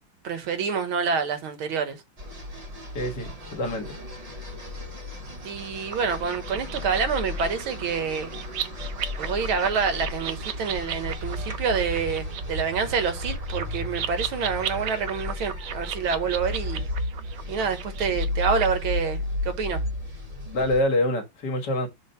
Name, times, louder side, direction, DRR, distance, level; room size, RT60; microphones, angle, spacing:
voice 1, 0.2-2.0 5.4-8.3 9.2-16.8 17.5-19.8, right 6 dB, 85° right, 2.0 m, -27 dB
sound 1, 2.2-20.8, left 1 dB, 30° right, 0.7 m, -34 dB
voice 2, 3.0-3.9 20.5-21.9, left 1 dB, 60° left, 2.0 m, -26 dB
sound 2, 5.9-18.7, right 10 dB, 65° right, 1.2 m, -36 dB
7.2 x 2.6 x 5.5 m
omnidirectional pair, 2.2 m